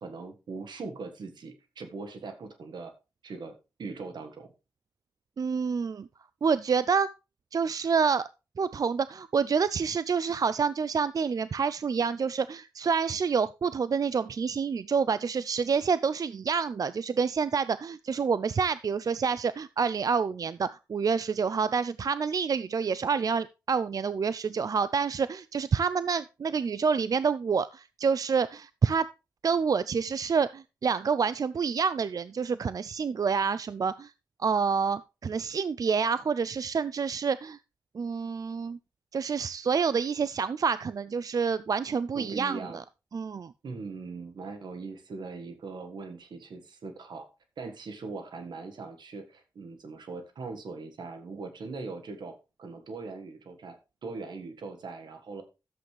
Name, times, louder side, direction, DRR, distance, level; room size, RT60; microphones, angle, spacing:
voice 1, 0.0-2.9 3.2-4.5 42.1-42.8 43.6-47.3 47.6-55.4, right 4 dB, 85° right, 1.6 m, -40 dB
voice 2, 5.4-6.1 6.4-7.1 7.5-8.2 8.6-29.1 29.4-34.1 34.4-37.6 37.9-38.8 39.1-42.8 43.1-43.5, right 5 dB, 55° right, 0.4 m, -28 dB
11.5 x 7.7 x 3.3 m
cardioid pair, 60°, 7 cm